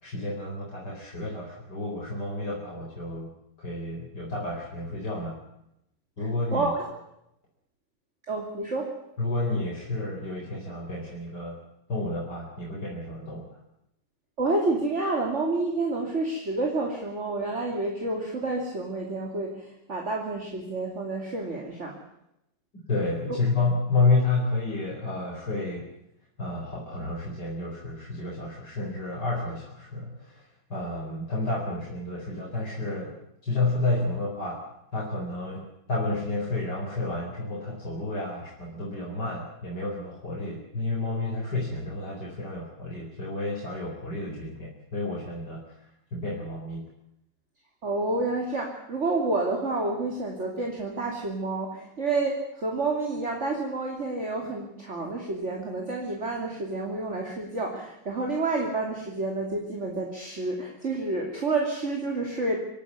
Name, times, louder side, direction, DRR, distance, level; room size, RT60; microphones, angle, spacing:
voice 1, 0.0-3.3 3.6-5.4 6.2-6.7 9.2-11.6 11.9-13.5 22.9-25.8 26.4-33.2 33.4-34.6 34.9-46.8, left 2 dB, 60° left, -2 dB, 4.9 m, -30 dB
voice 2, 6.5-6.9 8.3-8.9 14.4-22.0 23.3-23.4 47.8-62.6, right 2 dB, 35° right, 0 dB, 3.1 m, -29 dB
26.0 x 11.5 x 9.6 m, 0.81 s
omnidirectional pair, 2.0 m